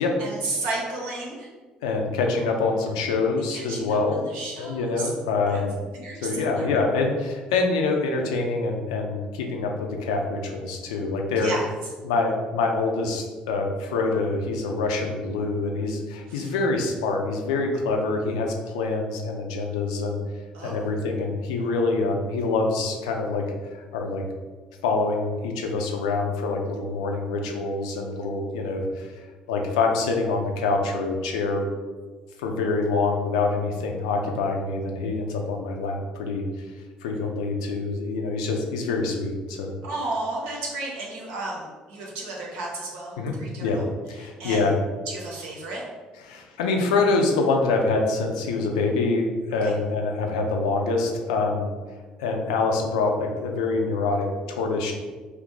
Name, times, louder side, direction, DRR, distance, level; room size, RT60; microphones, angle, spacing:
voice 1, 0.0-1.5 3.5-5.1 5.5-5.6 5.9-6.7 11.4-11.6 16.3-16.5 20.5-20.9 39.8-43.8 44.2-44.6 45.1-45.8 49.6-49.7, right 2 dB, 65° right, -3 dB, 0.8 m, -33 dB
voice 2, 1.8-4.2 4.6-5.8 6.2-11.5 12.0-20.2 20.6-23.4 23.7-24.2 24.8-31.7 32.4-36.7 37.0-39.7 43.2-43.3 43.6-43.8 44.1-44.7 46.3-51.7 52.2-54.9, left 3 dB, 70° left, 2 dB, 0.4 m, -25 dB
2.8 x 2.3 x 3.7 m, 1.4 s
figure-of-eight pair, 50°, 4 cm